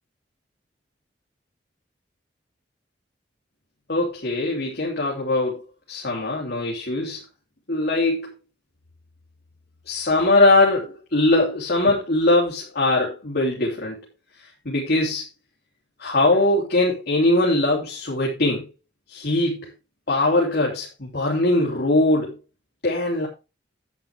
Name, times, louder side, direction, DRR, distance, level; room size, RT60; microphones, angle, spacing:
voice 1, 3.9-5.6 5.9-7.2 7.7-8.3 9.8-14.0 14.4-15.3 16.0-18.7 19.1-19.7 20.1-22.4 22.8-23.3, left 2 dB, 60° left, -3 dB, 3.1 m, -21 dB
10.5 x 8.9 x 3.4 m, 0.28 s
head